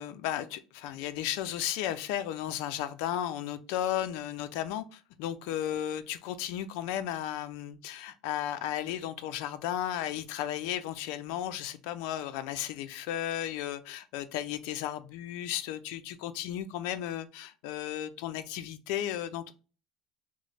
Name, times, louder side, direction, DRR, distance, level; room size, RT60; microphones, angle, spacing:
voice 1, 0.0-19.5, left 11 dB, 75° left, 13 dB, 0.4 m, -34 dB
3.0 x 2.1 x 4.0 m, 0.35 s
supercardioid pair, 120°, 0 cm